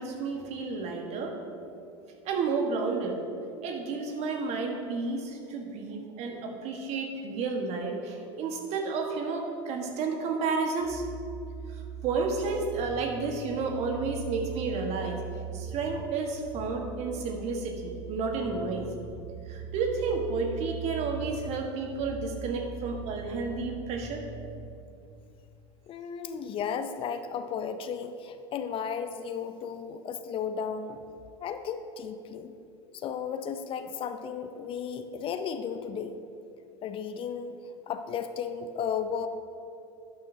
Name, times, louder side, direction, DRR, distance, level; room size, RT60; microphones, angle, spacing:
voice 1, 0.0-1.3 2.2-3.2 3.6-11.0 12.0-15.2 15.5-18.9 19.5-24.2, right 4 dB, 50° right, 2 dB, 1.5 m, -31 dB
sound 1, 10.8-24.7, right 6 dB, 70° left, 2.1 m, -41 dB
voice 2, 25.9-31.0 31.4-32.5 32.9-36.2 36.8-37.6 37.9-39.3, left 7 dB, 40° left, 9 dB, 0.6 m, -34 dB
12.0 x 9.1 x 2.8 m, 2.6 s
hypercardioid pair, 80°, 14 cm